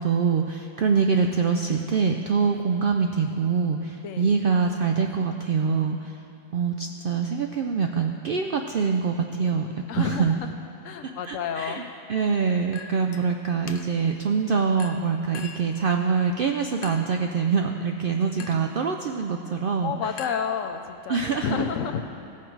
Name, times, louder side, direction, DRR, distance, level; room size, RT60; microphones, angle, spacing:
voice 1, 0.0-6.2 6.5-9.7 10.0-10.3 11.0-11.8 12.1-19.9 21.1-21.6, right 5 dB, 70° right, 3 dB, 0.5 m, -24 dB
voice 2, 4.0-4.3 9.9-10.5 10.8-11.8 18.4-18.9 19.8-22.0, left 7 dB, 75° left, 7 dB, 1.0 m, -30 dB
Chink clink, 12.7-13.2 13.7-14.1 14.8-15.8 16.8-17.2 18.4-18.7 20.2-21.0, left 5 dB, 60° left, 0.6 m, -42 dB
16.5 x 5.9 x 4.6 m, 2.9 s
omnidirectional pair, 1.4 m